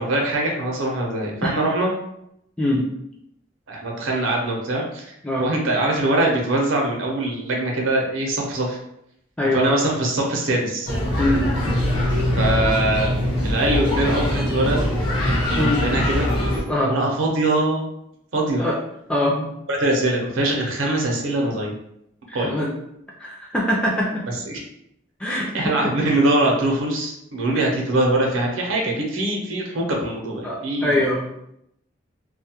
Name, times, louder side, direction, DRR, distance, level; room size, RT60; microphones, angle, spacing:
voice 1, 0.0-1.9 3.7-8.8 9.5-10.9 12.3-13.2 13.4-14.8 15.5-16.3 16.8-17.9 18.3-18.6 19.7-21.7 22.3-22.6 24.5-24.6 25.3-31.0, right 1 dB, 75° right, 0 dB, 0.6 m, -22 dB
voice 2, 9.4-9.7 11.2-11.5 15.6-15.8 16.7-16.9 18.6-18.8 19.1-19.5 22.3-22.7 23.2-24.2 25.2-25.9 27.5-27.6 30.4-31.3, left 1 dB, 5° left, -4 dB, 0.3 m, -23 dB
sound 1, 10.9-16.6, left 1 dB, 45° left, 0.9 m, -22 dB
2.2 x 2.1 x 2.8 m, 0.77 s
head